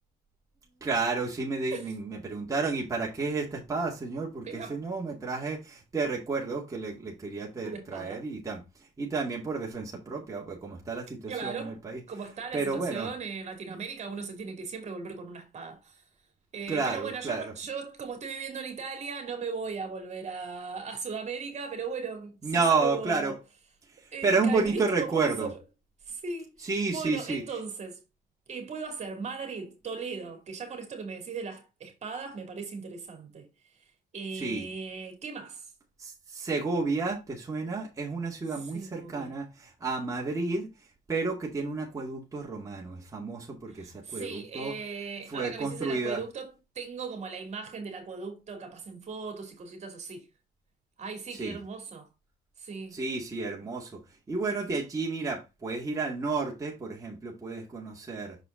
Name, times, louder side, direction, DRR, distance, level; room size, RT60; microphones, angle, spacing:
voice 1, 0.8-8.6 9.0-12.0 12.5-13.1 16.7-17.5 22.4-23.3 24.0-25.5 26.6-27.4 34.3-34.7 36.0-40.7 41.1-44.7 45.3-46.2 51.3-51.6 52.9-54.0 54.3-58.4, right 4 dB, 20° right, 2.1 m, -31 dB
voice 2, 4.4-4.8 7.6-8.2 11.3-11.8 12.1-16.0 16.5-23.4 24.1-25.6 26.0-28.0 28.5-33.5 34.1-35.7 38.5-39.4 43.7-50.3 51.0-52.1 52.6-53.0, right 5 dB, 40° right, 2.6 m, -38 dB
6.6 x 4.9 x 3.8 m
cardioid pair, 110°, 17 cm